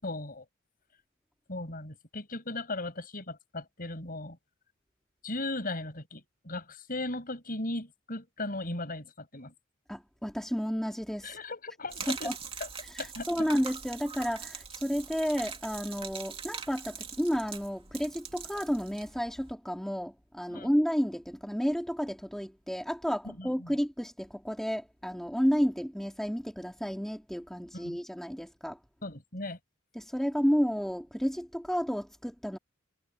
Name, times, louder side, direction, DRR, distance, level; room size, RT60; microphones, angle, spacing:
voice 1, 0.0-0.4 1.5-4.4 5.2-9.5 11.2-12.3 12.6-12.7 13.0-13.5 20.5-20.7 23.2-23.8 27.7-28.0 29.0-29.6, left 2 dB, 45° left, 6.8 m, -37 dB
voice 2, 9.9-11.4 12.1-12.3 12.9-28.8 29.9-32.6, equal, ahead, 2.9 m, -31 dB
Gurgling / Liquid, 11.9-19.5, right 6 dB, 25° right, 2.5 m, -42 dB
head